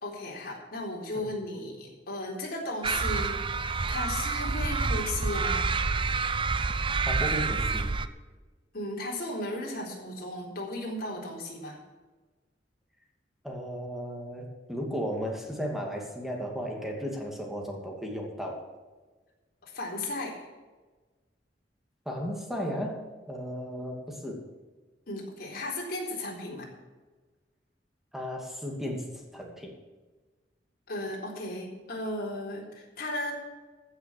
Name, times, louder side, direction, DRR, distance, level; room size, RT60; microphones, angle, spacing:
voice 1, 0.0-3.4 3.9-5.7 8.7-11.8 19.6-20.5 25.1-26.7 30.9-33.3, left 1 dB, 55° left, -2 dB, 3.9 m, -35 dB
sound 1, 2.8-8.1, right 4 dB, 30° right, 0.6 m, -28 dB
voice 2, 7.1-7.9 13.4-18.6 22.1-23.0 23.3-24.4 28.1-29.7, equal, ahead, 0 dB, 2.5 m, -35 dB
15.0 x 6.5 x 7.3 m, 1.3 s
head